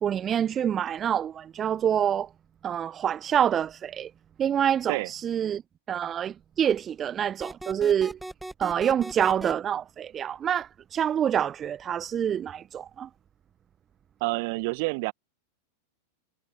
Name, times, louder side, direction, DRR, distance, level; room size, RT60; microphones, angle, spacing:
voice 1, 0.0-2.3 2.6-4.1 4.4-5.6 5.9-8.2 8.6-13.1, right 9 dB, 25° right, 1.2 m, -26 dB
sound 1, 7.4-9.5, right 1 dB, 5° right, 1.7 m, -39 dB
voice 2, 14.2-15.1, right 27 dB, 50° right, 1.5 m, -28 dB
figure-of-eight pair, 90°, 0 cm